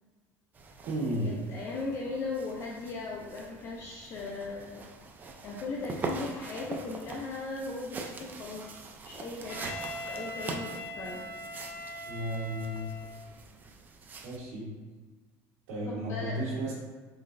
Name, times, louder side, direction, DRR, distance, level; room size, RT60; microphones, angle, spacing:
sound 1, 0.5-14.4, right 3 dB, 25° right, 0.4 m, -43 dB
voice 1, 0.8-1.4 12.1-12.9 14.2-14.7 15.7-16.7, right 1 dB, 75° right, -9 dB, 1.3 m, -33 dB
voice 2, 1.5-4.9 5.4-11.3 15.9-16.5, left 3 dB, 40° left, -2 dB, 0.5 m, -38 dB
Wind instrument woodwind instrument, 9.5-13.3, left 1 dB, 65° left, 0.9 m, -41 dB
4.2 x 3.9 x 2.5 m, 1.3 s
cardioid pair, 150°, 8 cm